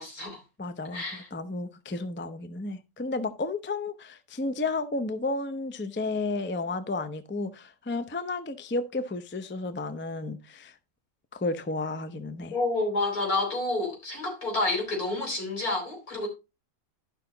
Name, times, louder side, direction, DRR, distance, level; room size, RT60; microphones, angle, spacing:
voice 1, 0.0-0.4 0.9-1.3 12.5-16.3, left 2 dB, 85° left, 4.5 m, -29 dB
voice 2, 0.6-10.7 11.3-12.6, left 3 dB, 15° left, 0.3 m, -32 dB
11.5 x 5.6 x 3.9 m
omnidirectional pair, 1.5 m